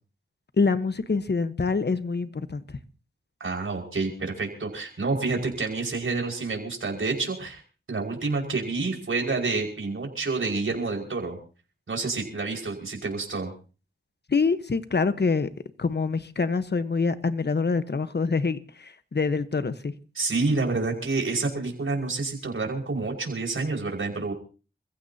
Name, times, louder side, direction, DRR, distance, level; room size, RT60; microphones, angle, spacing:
voice 1, 0.6-2.6 14.3-15.5 15.8-19.9, left 4 dB, 55° left, 1.2 m, -25 dB
voice 2, 3.4-7.6 7.9-11.4 11.9-13.5 20.2-24.3, right 3 dB, 80° right, 5.5 m, -28 dB
28.5 x 15.5 x 2.9 m
cardioid pair, 50°, 21 cm